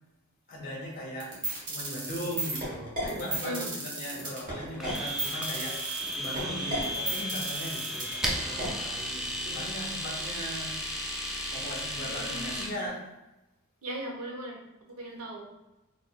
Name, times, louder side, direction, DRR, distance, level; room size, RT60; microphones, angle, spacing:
voice 1, 0.5-10.8 11.5-13.1, equal, 45° left, -4 dB, 1.1 m, -38 dB
sound 1, 1.2-8.7, right 2 dB, 40° right, 1.2 m, -34 dB
voice 2, 3.4-3.7 12.0-12.8 13.8-14.6 14.9-15.5, right 1 dB, 80° right, 0 dB, 0.9 m, -38 dB
Domestic sounds home sounds, 4.8-12.7, equal, ahead, 0.4 m, -34 dB
4.2 x 3.1 x 2.2 m, 0.99 s
head